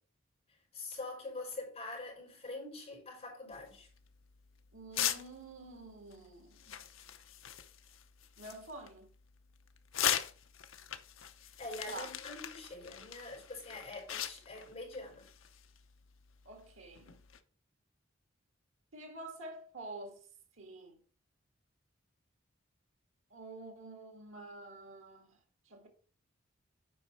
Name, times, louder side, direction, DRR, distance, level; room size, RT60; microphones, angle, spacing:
voice 1, 0.5-3.9 11.4-15.3, left 2 dB, 30° left, 4.7 m, -45 dB
sound 1, 3.5-17.4, left 10 dB, 80° left, 0.7 m, -41 dB
voice 2, 4.7-6.8 8.4-9.1 11.9-12.1 16.5-17.2 18.9-20.3 20.6-21.0 23.3-25.4 25.7-25.9, right 2 dB, 90° right, 2.0 m, -48 dB
8.4 x 4.9 x 4.4 m
head